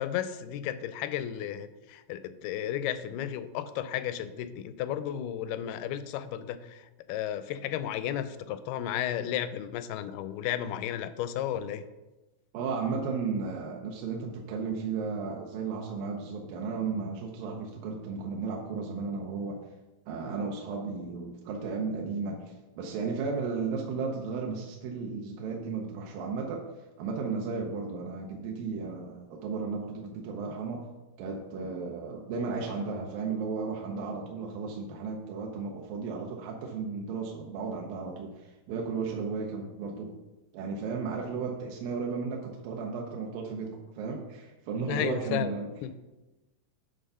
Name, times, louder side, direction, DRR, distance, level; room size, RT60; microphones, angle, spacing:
voice 1, 0.0-6.8 7.1-11.9 44.8-45.5 45.8-45.9, left 10 dB, 85° left, 12 dB, 2.4 m, -33 dB
voice 2, 12.5-19.6 20.1-26.7 27.0-30.9 31.2-40.2 40.5-45.7, right 5 dB, 75° right, 0 dB, 2.2 m, -34 dB
10.5 x 3.8 x 5.5 m, 1.1 s
omnidirectional pair, 4.5 m